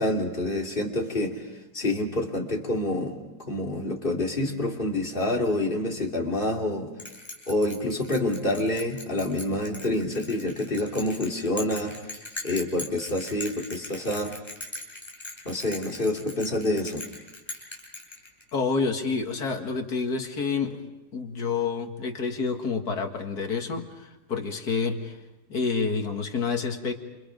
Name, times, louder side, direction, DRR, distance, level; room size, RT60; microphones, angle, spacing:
voice 1, 0.0-1.4 1.7-3.2 3.5-6.9 7.5-11.9 12.4-14.3 15.4-17.0, left 1 dB, 30° left, 0 dB, 3.0 m, -27 dB
Bell, 7.0-18.7, left 2 dB, 15° left, 4.8 m, -40 dB
voice 2, 18.5-20.8 21.1-25.2 25.5-26.9, left 5 dB, 65° left, 4 dB, 2.4 m, -28 dB
28.5 x 28.5 x 5.2 m, 1.0 s
omnidirectional pair, 1.8 m